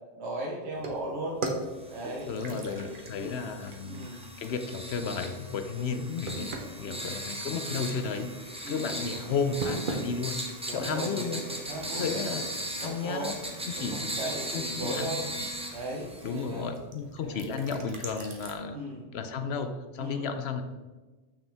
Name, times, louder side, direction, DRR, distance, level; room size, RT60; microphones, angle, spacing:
voice 1, 0.2-1.4 1.9-3.4 3.9-4.2 5.7-6.0 6.8-7.1 8.6-9.2 10.6-12.3 12.8-13.4 13.7-15.2 15.7-16.7 17.2-17.8 18.7-19.0 20.0-20.3, right 1 dB, 70° right, -3 dB, 1.2 m, -37 dB
sound 1, 0.7-18.5, right 2 dB, 50° right, 1.0 m, -42 dB
sound 2, 1.8-16.7, right 1 dB, 5° right, 0.7 m, -39 dB
voice 2, 2.0-4.1 4.4-6.5 6.8-8.3 8.7-10.4 10.7-11.4 11.9-12.5 12.8-13.3 13.7-14.2 14.5-15.5 16.2-18.8 19.1-20.6, left 5 dB, 70° left, 8 dB, 0.8 m, -33 dB
6.7 x 6.2 x 3.4 m, 1.3 s
omnidirectional pair, 1.1 m